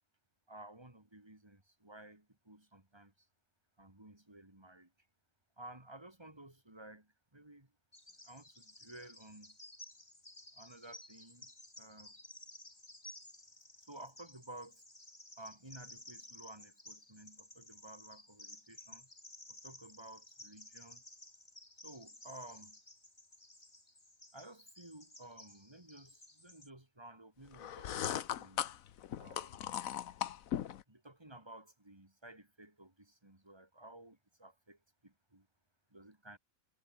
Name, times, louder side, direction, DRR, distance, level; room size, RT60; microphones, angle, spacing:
voice 1, 0.5-3.3 3.8-4.9 5.6-7.7 8.2-9.6 10.5-11.5 11.8-12.2 13.9-14.8 15.4-19.1 19.5-21.0 21.8-22.8 24.3-28.6 29.2-29.7 30.9-35.5 35.9-36.4, right 1 dB, 15° right, 3.4 m, -54 dB
Bird vocalization bird call bird song, 7.9-26.7, left 1 dB, 30° left, 4.6 m, -56 dB
sound 1, 27.5-30.8, left 10 dB, 70° left, 1.3 m, -38 dB
omnidirectional pair, 1.5 m